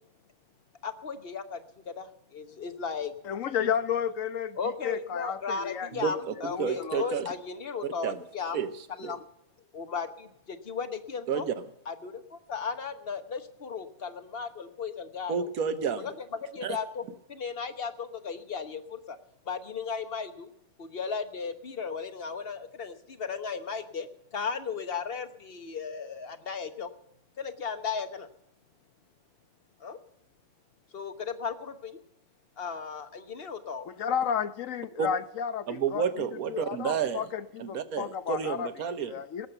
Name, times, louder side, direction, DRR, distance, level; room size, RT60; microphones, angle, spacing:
voice 1, 0.8-3.1 4.6-8.6 8.9-9.2 9.7-11.5 11.9-15.5 16.0-19.2 19.4-20.5 20.8-26.9 27.4-28.3 29.8-30.0 30.9-32.0 32.6-33.9, left 5 dB, 45° left, 10 dB, 1.3 m, -36 dB
voice 2, 3.2-4.6 4.8-5.9 6.5-7.1 33.8-36.0 36.5-38.7 39.1-39.5, left 8 dB, 65° left, 13 dB, 1.2 m, -32 dB
voice 3, 5.9-7.3 7.8-8.2 8.5-8.7 9.0-9.1 11.3-11.5 15.3-16.1 16.6-16.8 35.0-35.1 35.7-37.3 37.6-39.1, right 7 dB, 75° right, 11 dB, 1.5 m, -30 dB
19.0 x 7.4 x 7.9 m, 0.77 s
omnidirectional pair, 1.5 m